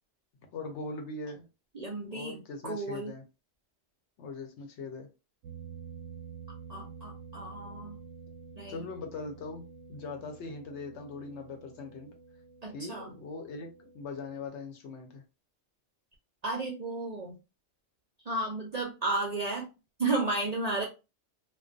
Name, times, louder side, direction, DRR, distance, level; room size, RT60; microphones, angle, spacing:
voice 1, 0.5-1.5 2.1-3.2 4.2-5.1 8.7-9.6 9.9-12.1 12.7-13.7 13.9-15.2, left 3 dB, 75° left, 0.9 m, -40 dB
voice 2, 1.7-3.1 6.7-8.0 8.6-8.9 12.6-13.1 16.4-17.4 18.3-19.7 20.0-20.8, right 2 dB, 50° right, 0.5 m, -33 dB
sound 1, 5.4-14.5, right 6 dB, 85° right, 0.9 m, -49 dB
2.3 x 2.2 x 2.5 m
omnidirectional pair, 1.2 m